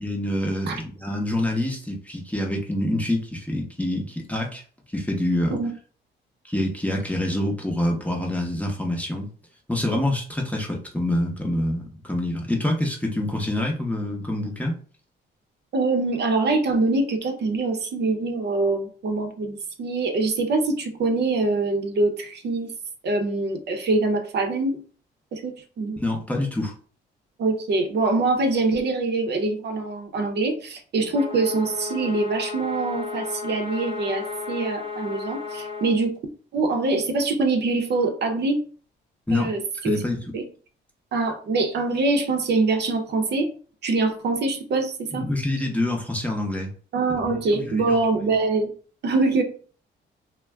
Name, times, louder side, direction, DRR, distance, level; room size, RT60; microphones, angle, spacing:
voice 1, 0.0-4.6 4.9-5.6 6.4-9.3 9.7-14.8 26.0-26.7 39.3-39.5 39.8-40.2 45.1-46.7 47.2-48.0, left 1 dB, 5° left, 0 dB, 0.7 m, -26 dB
voice 2, 15.7-22.7 23.0-24.8 25.3-26.0 27.4-36.1 36.5-38.6 39.3-40.0 40.3-40.4 41.1-43.5 43.8-45.3 46.9-48.7 49.0-49.4, right 3 dB, 60° right, 4 dB, 0.6 m, -24 dB
sound 1, 31.1-36.0, left 4 dB, 25° right, 0.9 m, -33 dB
2.3 x 2.1 x 3.4 m, 0.41 s
cardioid pair, 90°, 20 cm